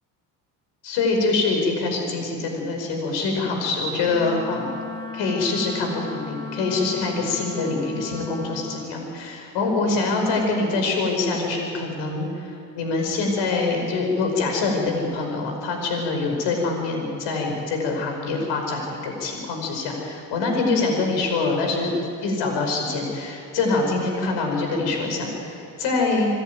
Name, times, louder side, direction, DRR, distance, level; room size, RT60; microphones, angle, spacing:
voice 1, 0.8-4.8 5.1-21.9 22.2-26.3, left 3 dB, 75° left, 2 dB, 5.2 m, -25 dB
Wind instrument woodwind instrument, 4.1-8.9, left 6 dB, 10° left, 2.9 m, -36 dB
26.5 x 10.5 x 9.3 m, 2.5 s
supercardioid pair, 75°, 43 cm